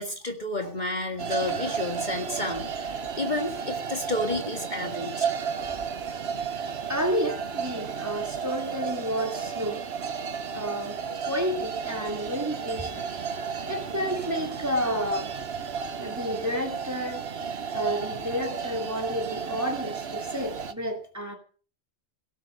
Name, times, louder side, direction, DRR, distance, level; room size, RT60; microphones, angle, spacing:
voice 1, 0.0-5.3, left 2 dB, 40° left, 2.0 m, -31 dB
sound 1, 1.2-20.7, right 6 dB, 70° right, 1.3 m, -33 dB
voice 2, 6.9-9.8 10.5-11.0 11.3-13.0 13.6-15.3 16.0-17.2 17.7-21.4, equal, 15° right, 2.6 m, -30 dB
17.5 x 8.5 x 6.5 m
omnidirectional pair, 1.1 m